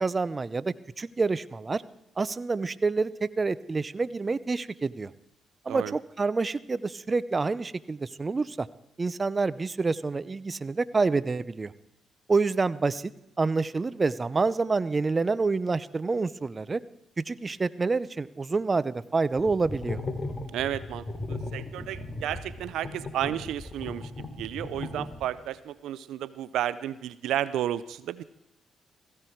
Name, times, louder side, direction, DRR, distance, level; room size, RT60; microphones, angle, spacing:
voice 1, 0.0-1.8 2.2-5.1 5.6-8.7 9.0-11.7 12.3-13.1 13.4-16.8 17.2-20.0, right 4 dB, 35° right, 18 dB, 0.7 m, -27 dB
sound 1, 19.4-25.5, left 2 dB, 40° left, 3.1 m, -36 dB
voice 2, 20.5-28.2, right 12 dB, 80° right, 17 dB, 0.5 m, -32 dB
16.5 x 16.0 x 4.6 m, 0.85 s
supercardioid pair, 55°, 0 cm